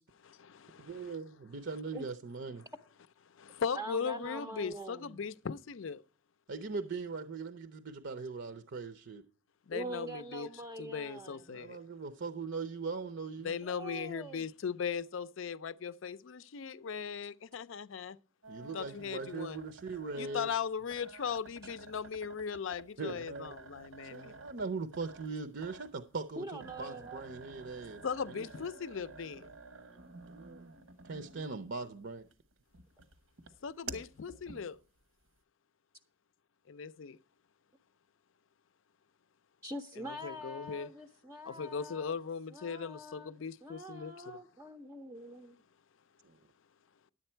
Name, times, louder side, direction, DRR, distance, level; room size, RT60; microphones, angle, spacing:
voice 1, 0.3-1.1 3.4-6.0 9.7-10.5 10.8-11.8 13.4-18.2 18.6-19.6 20.2-24.4 28.0-29.5 33.6-34.8 36.7-37.2 40.0-40.9 41.5-44.4, left 6 dB, 65° left, 0.5 m, -38 dB
voice 2, 0.8-2.7 6.5-9.2 11.5-13.5 18.5-20.5 23.0-23.6 24.1-28.5 30.3-30.7 31.0-32.2 46.2-46.4, right 4 dB, 60° right, 0.6 m, -40 dB
voice 3, 3.8-5.2 9.7-11.4 13.6-14.5 26.4-27.2 39.6-42.1 42.5-43.3 43.6-45.6, right 1 dB, 15° right, 0.5 m, -44 dB
sound 1, 18.4-31.7 32.2-35.0, right 4 dB, 85° right, 1.2 m, -51 dB
10.5 x 8.6 x 4.4 m
head